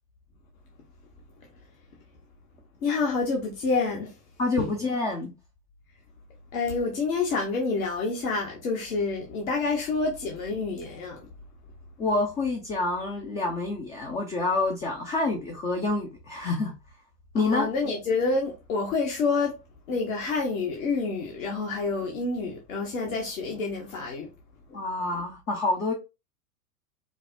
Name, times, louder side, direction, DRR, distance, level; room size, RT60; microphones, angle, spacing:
voice 1, 2.8-4.2 4.5-4.8 6.5-11.3 17.4-19.6 19.9-24.3 24.7-24.8 25.1-25.2, left 4 dB, 60° left, 1.2 m, -28 dB
voice 2, 4.4-5.3 12.0-16.7 17.3-17.7 24.7-25.9, left 2 dB, 15° left, 0.5 m, -27 dB
5.1 x 2.1 x 2.6 m
figure-of-eight pair, 100°, 47 cm